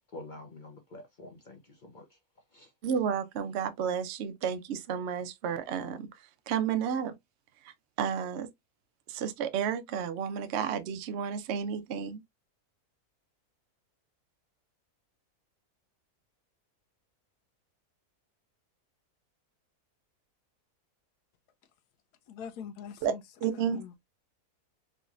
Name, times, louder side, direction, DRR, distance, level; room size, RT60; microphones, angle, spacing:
voice 1, 0.1-2.2 2.5-2.7, left 2 dB, 45° left, 0.6 m, -47 dB
voice 2, 2.8-6.1 6.5-7.1 7.6-8.5 9.1-12.2 23.0-23.1 23.4-23.8, right 8 dB, 60° right, 0.7 m, -31 dB
voice 3, 22.3-23.2 23.5-24.0, left 7 dB, 90° left, 1.2 m, -43 dB
3.5 x 3.1 x 2.4 m
omnidirectional pair, 1.6 m